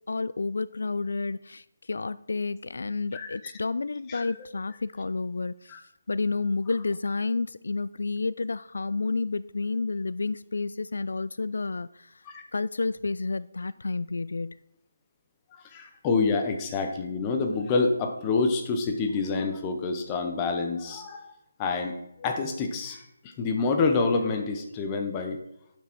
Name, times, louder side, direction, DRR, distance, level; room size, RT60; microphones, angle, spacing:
voice 1, 0.1-5.8 6.1-12.2 12.5-14.6, left 3 dB, 65° left, 16 dB, 0.3 m, -30 dB
voice 2, 3.1-3.5 4.1-4.5 5.7-5.8 12.3-12.4 15.5-21.3 21.6-25.4, left 4 dB, 10° left, 4 dB, 0.7 m, -28 dB
8.0 x 6.1 x 5.9 m, 0.82 s
hypercardioid pair, 175°, 0 cm